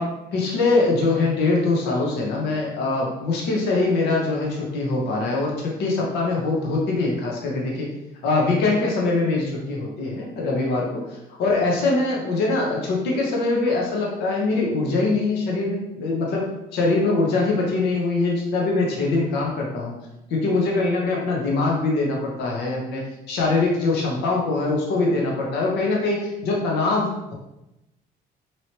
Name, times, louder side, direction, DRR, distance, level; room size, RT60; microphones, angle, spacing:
voice 1, 0.0-7.9 8.2-19.9 20.3-27.3, left 3 dB, 80° left, -2 dB, 0.9 m, -23 dB
3.0 x 2.9 x 2.9 m, 0.91 s
cardioid pair, 110°, 17 cm